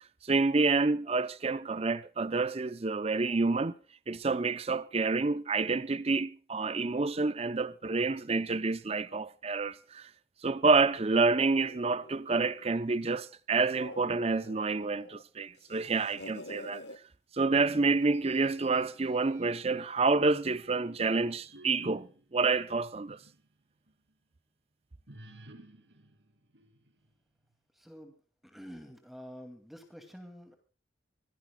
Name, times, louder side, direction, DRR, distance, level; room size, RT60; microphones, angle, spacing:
voice 1, 0.2-3.7 4.1-10.1 10.4-16.8 17.3-23.2, right 3 dB, 35° right, 0.6 m, -28 dB
sound 1, 11.4-13.1 13.5-15.2 15.5-17.0 17.8-18.5, left 2 dB, 70° left, 1.2 m, -49 dB
sound 2, 18.1-19.9 20.5-23.5 23.9-24.0 25.1-27.1, right 1 dB, 80° right, 2.7 m, -54 dB
voice 2, 27.7-28.1 28.4-30.6, equal, ahead, 2.4 m, -48 dB
25.5 x 16.5 x 2.3 m
head